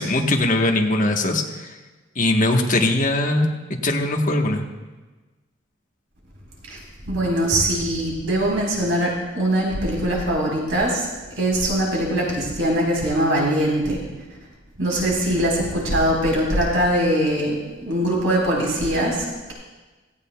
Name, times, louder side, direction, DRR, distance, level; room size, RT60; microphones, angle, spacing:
voice 1, 0.0-1.8 2.1-3.5 3.8-4.6, left 2 dB, 40° left, 2 dB, 1.1 m, -20 dB
voice 2, 7.1-11.1 11.4-14.0 14.8-19.5, right 1 dB, 85° right, -3 dB, 3.9 m, -22 dB
17.0 x 15.0 x 2.2 m, 1.2 s
head